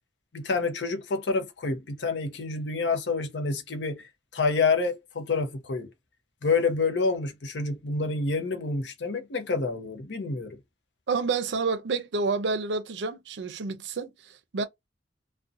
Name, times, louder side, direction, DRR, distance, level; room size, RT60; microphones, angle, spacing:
voice 1, 0.3-4.0 4.3-5.9 6.4-10.6, left 4 dB, 75° left, 0.6 m, -28 dB
voice 2, 11.1-14.6, right 4 dB, 75° right, 0.5 m, -29 dB
2.5 x 2.1 x 2.4 m
head